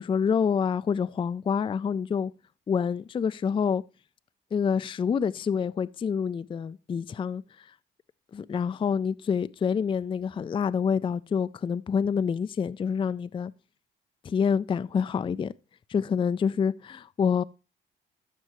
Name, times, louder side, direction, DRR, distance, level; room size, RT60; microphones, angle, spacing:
voice 1, 0.0-2.3 2.7-3.8 4.5-7.4 8.3-13.5 14.2-15.5 15.9-17.4, left 6 dB, 25° left, 0.3 m, -27 dB
14.0 x 5.4 x 3.0 m
cardioid pair, 90°, 20 cm